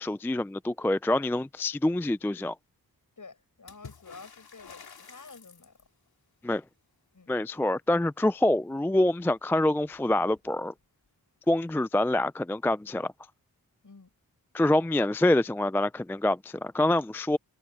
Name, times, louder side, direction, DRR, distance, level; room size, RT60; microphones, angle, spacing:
voice 1, 0.0-2.5 6.4-6.6 7.3-10.7 11.5-13.1 14.5-17.4, left 1 dB, 5° left, 0.3 m, -26 dB
voice 2, 3.2-5.8 7.1-7.3 13.8-14.1, left 4 dB, 55° left, 7.9 m, -50 dB
Water / Splash splatter, 3.7-6.1 9.3-9.4 9.7-10.5 11.6-11.7, left 5 dB, 80° left, 3.2 m, -50 dB
cardioid pair, 60°, 36 cm